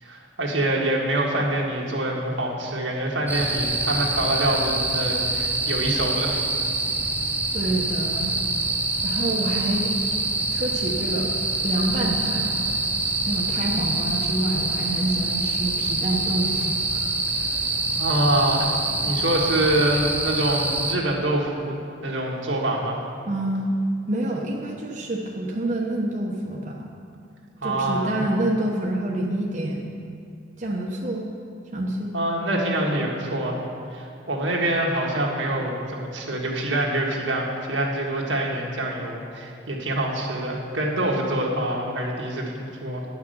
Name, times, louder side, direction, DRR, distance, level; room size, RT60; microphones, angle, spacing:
voice 1, 0.0-6.4 18.0-18.7 19.0-21.7 22.0-23.0 27.6-28.3 32.1-33.6 33.9-43.0, right 1 dB, 85° right, -2 dB, 1.7 m, -25 dB
sound 1, 3.3-20.9, right 2 dB, 10° right, 0.5 m, -25 dB
voice 2, 7.5-8.4 9.0-9.9 10.5-12.7 13.3-17.1 23.3-23.7 24.1-26.9 27.6-29.9 30.6-31.2 31.7-32.1, right 1 dB, 40° right, -2 dB, 0.9 m, -27 dB
10.0 x 6.0 x 7.9 m, 2.5 s
head